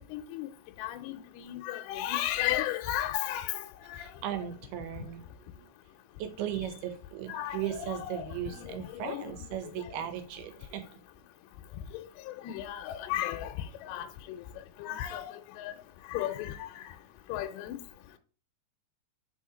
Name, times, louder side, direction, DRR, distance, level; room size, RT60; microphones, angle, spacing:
voice 1, 0.1-0.5 0.8-4.1 7.3-8.3 8.5-8.8 9.1-9.3 12.3-13.5 13.9-14.4 14.8-15.7 16.1-16.7 17.3-17.8, left 13 dB, 80° left, 2.5 m, -34 dB
voice 2, 4.0-5.2 6.2-10.8, right 10 dB, 80° right, 2.8 m, -37 dB
5.6 x 4.6 x 4.9 m
omnidirectional pair, 4.6 m